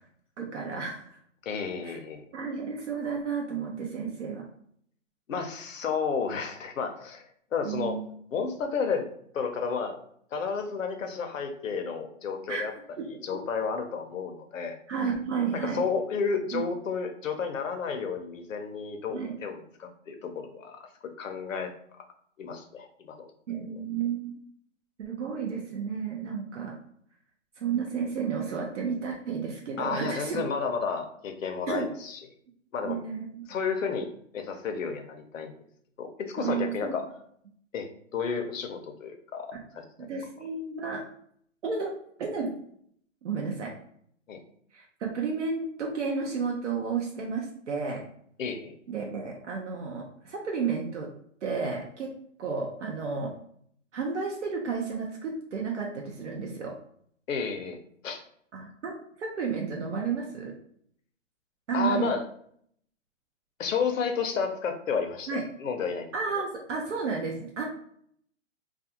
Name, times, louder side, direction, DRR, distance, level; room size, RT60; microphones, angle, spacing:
voice 1, 0.4-1.2 1.8-2.0 2.3-4.4 7.6-8.0 12.5-12.6 13.0-13.1 14.9-15.9 16.5-16.6 19.1-19.4 23.5-24.4 25.0-26.8 27.6-30.4 31.7-31.9 32.8-33.4 36.4-36.9 40.0-41.0 41.6-42.6 43.2-43.7 44.7-48.0 48.9-51.1 51.4-52.1 52.4-53.3 53.9-56.7 58.5-60.5 61.7-62.1 65.3-65.4 66.1-67.7, right 5 dB, 65° right, -1 dB, 0.6 m, -32 dB
voice 2, 1.4-2.2 5.3-8.0 8.3-9.0 9.3-10.0 10.3-12.7 13.2-14.8 15.5-20.9 21.2-21.7 22.4-23.2 29.8-32.2 32.7-33.0 33.5-34.1 34.3-35.5 36.0-37.1 37.7-39.8 44.3-44.4 48.4-48.7 57.3-57.8 58.0-58.2 61.7-62.2 63.6-66.4, left 5 dB, 80° left, 5 dB, 0.7 m, -31 dB
2.4 x 2.2 x 2.8 m, 0.65 s
hypercardioid pair, 170°, 39 cm